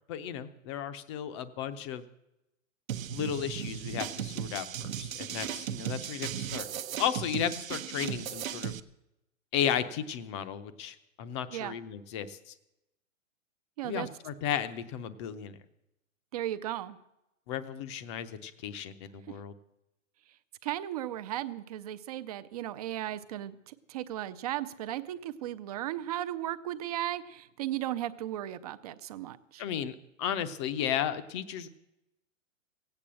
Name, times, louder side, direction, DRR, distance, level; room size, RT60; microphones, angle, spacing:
voice 1, 0.1-2.0 3.1-6.7 7.0-8.7 9.5-12.5 13.8-15.6 17.5-19.5 29.6-31.7, left 9 dB, 25° left, 12 dB, 0.6 m, -34 dB
sound 1, 2.9-8.8, right 10 dB, 85° right, 1.0 m, -36 dB
voice 2, 13.8-14.1 16.3-17.0 19.3-19.4 20.6-29.6, right 13 dB, 30° right, 12 dB, 0.5 m, -36 dB
17.0 x 8.7 x 7.5 m, 0.90 s
hypercardioid pair, 155°, 39 cm